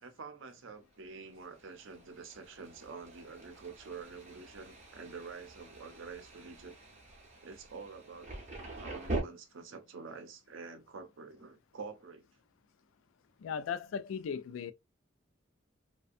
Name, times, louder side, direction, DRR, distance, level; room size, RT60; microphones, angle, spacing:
voice 1, 0.0-6.8 7.4-8.3 8.8-12.2, right 4 dB, 75° right, 0.6 m, -47 dB
Thunder, 1.1-9.2, right 2 dB, 35° right, 0.7 m, -44 dB
voice 2, 13.4-14.7, left 7 dB, 85° left, 0.3 m, -37 dB
2.5 x 2.2 x 2.4 m
head